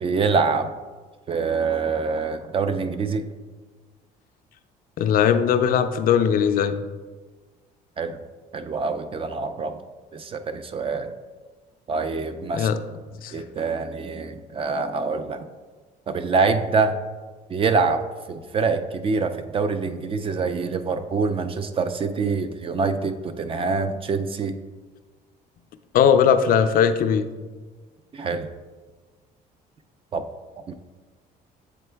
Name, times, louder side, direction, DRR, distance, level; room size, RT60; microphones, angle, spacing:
voice 1, 0.0-0.7 1.3-3.2 8.0-8.2 8.5-9.8 10.1-11.1 11.9-12.7 13.3-15.5 16.1-16.9 17.5-24.5 28.1-28.5 30.1-30.2 30.7-30.8, right 4 dB, 35° right, 10 dB, 0.4 m, -25 dB
voice 2, 5.0-6.8 12.5-12.8 13.2-13.3 25.9-27.3, left 8 dB, 60° left, 10 dB, 0.4 m, -19 dB
7.7 x 3.7 x 3.4 m, 1.4 s
cardioid pair, 110°, 17 cm